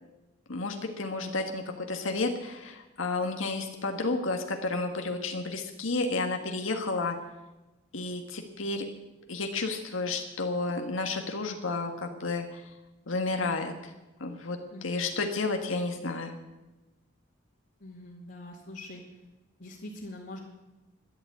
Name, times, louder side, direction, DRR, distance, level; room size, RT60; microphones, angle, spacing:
voice 1, 0.5-7.2 7.9-8.8 9.3-12.6 13.1-13.9 14.2-14.6 14.8-16.4, left 3 dB, 85° left, 4 dB, 1.6 m, -31 dB
voice 2, 14.7-15.2 17.8-19.0 19.6-20.4, left 1 dB, 60° left, -5 dB, 2.4 m, -43 dB
13.0 x 11.0 x 8.6 m, 1.1 s
head